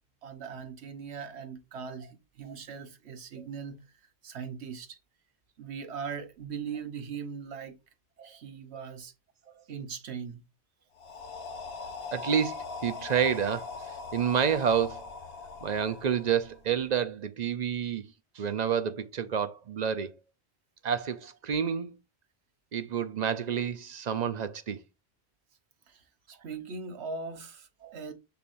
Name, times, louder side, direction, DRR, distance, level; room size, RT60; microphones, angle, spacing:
voice 1, 0.2-3.8 4.2-5.0 5.6-7.8 8.2-9.1 9.7-10.4 25.9-26.0 26.3-28.1, right 6 dB, 75° right, 1.2 m, -40 dB
sound 1, 11.0-16.9, left 4 dB, 65° left, 1.2 m, -41 dB
voice 2, 12.1-13.7 14.1-15.1 15.6-18.0 18.4-20.1 20.8-21.9 22.7-24.8 27.8-28.0, right 8 dB, 50° right, 0.6 m, -29 dB
6.8 x 6.0 x 2.6 m
omnidirectional pair, 1.1 m